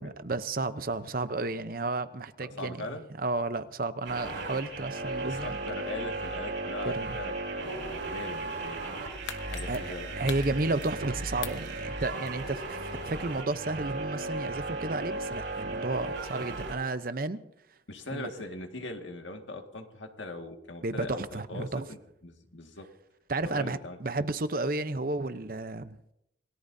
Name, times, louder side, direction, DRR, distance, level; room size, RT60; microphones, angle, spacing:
voice 1, 0.0-2.8 3.2-5.6 6.8-7.2 9.7-17.4 18.1-18.3 20.8-21.9 23.3-26.0, right 2 dB, 50° right, 0.7 m, -32 dB
voice 2, 2.4-3.1 5.2-8.8 9.5-10.3 17.9-22.9 23.5-24.3, left 2 dB, 90° left, 1.9 m, -41 dB
sound 1, 4.0-16.7, right 2 dB, 90° right, 6.9 m, -36 dB
sound 2, 8.9-11.1 11.4-12.7 13.1-13.2, left 8 dB, 70° left, 1.2 m, -42 dB
28.0 x 18.0 x 2.7 m
head